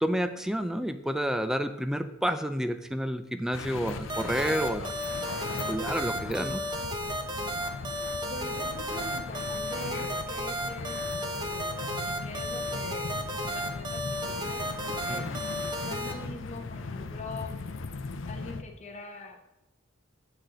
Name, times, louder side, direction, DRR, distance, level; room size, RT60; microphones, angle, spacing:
voice 1, 0.0-4.9 5.7-6.6 15.1-15.4, equal, 5° right, 10 dB, 0.4 m, -30 dB
sound 1, 3.5-18.6, left 3 dB, 75° left, 0.6 m, -39 dB
sound 2, 4.1-16.1, equal, 25° right, 0.8 m, -33 dB
voice 2, 8.3-15.2 15.8-17.6 18.2-19.4, left 2 dB, 35° left, 2 dB, 1.0 m, -43 dB
8.5 x 6.3 x 3.8 m, 0.93 s
head